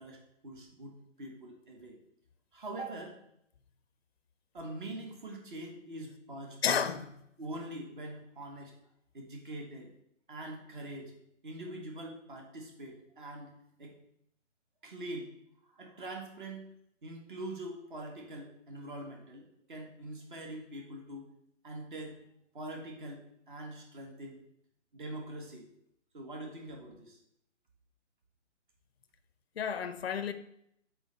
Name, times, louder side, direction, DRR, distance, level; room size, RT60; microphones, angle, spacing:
voice 1, 0.0-2.0 2.5-3.2 4.5-6.8 7.4-8.7 9.1-9.9 10.3-11.1 11.4-13.5 13.8-13.9 14.8-15.3 15.7-16.6 17.0-21.3 21.6-22.2 22.5-23.2 23.5-24.4 24.9-25.7 26.1-27.2, right 1 dB, 40° right, 1.4 m, -43 dB
voice 2, 6.6-7.1 29.6-30.3, left 7 dB, 55° left, 0.5 m, -31 dB
6.7 x 4.3 x 3.9 m
hypercardioid pair, 155°, 38 cm